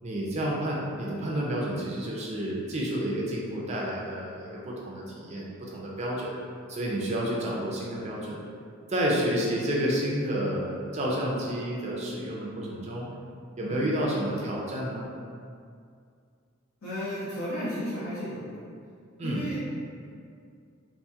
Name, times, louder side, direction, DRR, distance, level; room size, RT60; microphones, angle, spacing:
voice 1, 0.0-6.3 6.7-8.4 8.9-13.1 13.6-15.1 19.2-19.4, equal, 30° right, -4 dB, 0.4 m, -30 dB
voice 2, 16.8-18.4 19.2-19.6, equal, 65° left, -11 dB, 0.7 m, -33 dB
2.7 x 2.5 x 2.4 m, 2.3 s
head